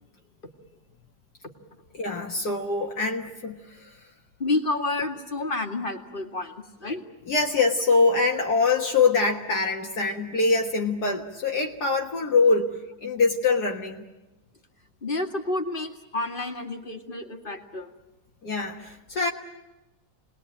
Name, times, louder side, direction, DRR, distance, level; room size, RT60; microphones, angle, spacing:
voice 1, 1.9-3.9 7.3-14.0 18.4-19.3, left 4 dB, 60° left, 0 dB, 2.1 m, -24 dB
voice 2, 4.4-7.0 15.0-17.9, left 2 dB, 30° left, 5 dB, 2.3 m, -30 dB
29.0 x 20.5 x 9.0 m, 1.1 s
omnidirectional pair, 1.9 m